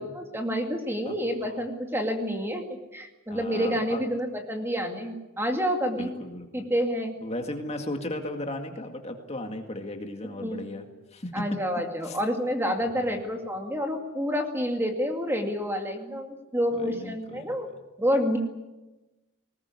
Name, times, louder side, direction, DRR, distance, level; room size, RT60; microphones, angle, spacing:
voice 1, 0.0-2.6 2.9-6.1 6.5-7.1 10.4-10.6 11.3-17.7 18.0-18.4, equal, 10° right, 4 dB, 2.2 m, -28 dB
voice 2, 3.3-4.0 6.0-6.6 7.2-10.8 11.1-11.3 12.0-12.2 13.0-13.2 16.7-17.5, left 1 dB, 30° left, 4 dB, 2.1 m, -36 dB
19.5 x 19.5 x 9.7 m, 1.1 s
head